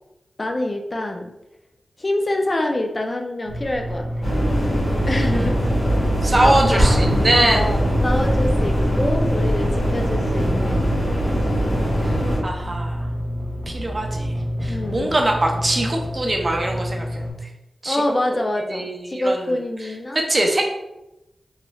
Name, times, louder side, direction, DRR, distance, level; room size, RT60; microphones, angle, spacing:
voice 1, 0.4-1.3 2.0-4.1 5.1-5.8 6.4-6.8 7.3-7.8 8.0-11.0 14.7-15.2 17.9-20.2, left 1 dB, 40° left, 3 dB, 0.4 m, -25 dB
sound 1, 3.5-17.3, equal, 65° right, 0.8 m, -28 dB
sound 2, 4.2-12.4, equal, 75° left, 1.3 m, -22 dB
voice 2, 6.2-7.7 12.0-12.1 12.4-13.1 13.7-14.3 14.6-17.5 17.8-18.0 18.6-19.5 20.1-20.6, right 1 dB, 35° right, 1 dB, 0.5 m, -22 dB
Explosion, 6.8-8.5, equal, ahead, 1.1 m, -23 dB
3.0 x 3.0 x 2.3 m, 0.93 s
wide cardioid pair, 65°, 0 cm